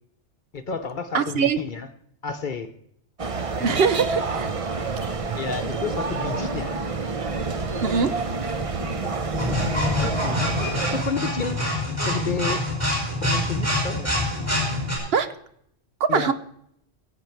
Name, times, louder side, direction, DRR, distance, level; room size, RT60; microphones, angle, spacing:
voice 1, 0.5-1.9 2.2-2.7 5.3-6.8 7.6-8.2 8.8-11.7 12.0-12.6 13.2-14.1 16.1-16.3, left 5 dB, 50° left, 0.9 m, -31 dB
voice 2, 1.1-1.6 3.6-4.5 7.8-8.1 15.1-15.3 16.0-16.3, right 6 dB, 60° right, 0.9 m, -22 dB
sound 1, 3.2-11.0, right 4 dB, 35° right, 0.8 m, -28 dB
sound 2, 9.4-15.0, left 1 dB, 10° right, 5.2 m, -26 dB
23.0 x 8.1 x 4.6 m
omnidirectional pair, 1.2 m